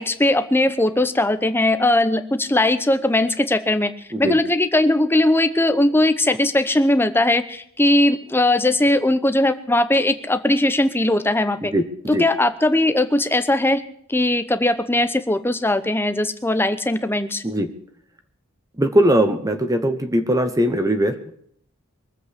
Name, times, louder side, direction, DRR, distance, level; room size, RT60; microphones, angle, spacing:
voice 1, 0.0-3.9 4.2-11.7 12.1-13.8 14.1-17.4, left 1 dB, 10° left, 10 dB, 0.8 m, -19 dB
voice 2, 11.7-12.2 17.4-17.7 18.8-21.4, equal, 15° right, 8 dB, 1.0 m, -20 dB
22.5 x 7.8 x 6.6 m, 0.67 s
head